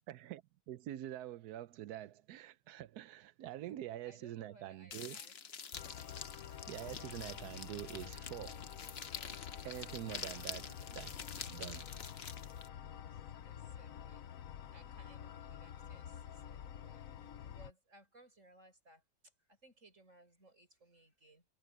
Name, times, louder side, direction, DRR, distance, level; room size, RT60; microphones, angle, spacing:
voice 1, 0.1-5.2 6.7-8.7 9.6-12.0, right 13 dB, 90° right, 1.2 m, -46 dB
voice 2, 4.0-5.4 10.2-10.5 12.6-14.3 14.7-21.5, right 2 dB, 50° right, 8.0 m, -64 dB
sound 1, 4.9-12.7, left 6 dB, 45° left, 1.2 m, -47 dB
sound 2, 5.7-17.7, left 9 dB, 65° left, 1.2 m, -49 dB
omnidirectional pair, 1.6 m